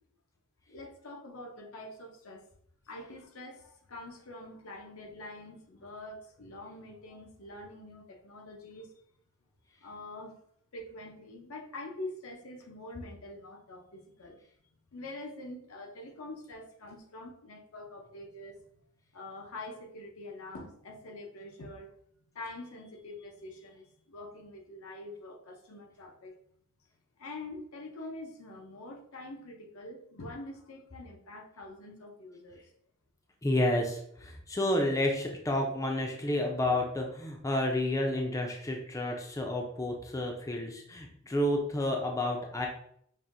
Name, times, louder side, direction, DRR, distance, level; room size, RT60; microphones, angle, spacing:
voice 1, 0.7-2.4 2.9-8.9 9.8-10.4 10.7-14.4 14.9-18.6 19.1-21.9 22.3-26.4 27.2-32.6, left 2 dB, 75° left, 3 dB, 0.7 m, -45 dB
voice 2, 33.4-42.7, left 1 dB, 15° left, 1 dB, 0.5 m, -30 dB
5.5 x 2.6 x 2.5 m, 0.67 s
head